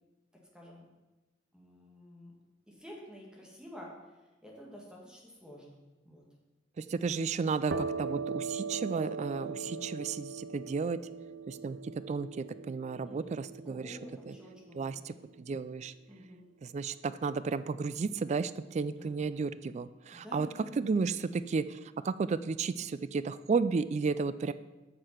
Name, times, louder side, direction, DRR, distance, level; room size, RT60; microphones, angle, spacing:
voice 1, 0.3-0.9 1.5-2.3 2.7-3.9 4.4-6.2 8.7-8.9 9.3-9.9 13.0-13.3 13.7-15.0 16.1-16.4 18.9-19.1 20.1-20.7, equal, 5° right, -3 dB, 1.8 m, -50 dB
voice 2, 6.8-11.0 11.5-11.8 12.1-14.0 14.3-14.4 14.7-15.9 16.6-20.5 20.8-24.5, right 4 dB, 40° right, 15 dB, 0.3 m, -33 dB
sound 1, 7.7-15.2, right 4 dB, 75° right, 0.7 m, -40 dB
7.7 x 6.7 x 5.8 m, 1.1 s
head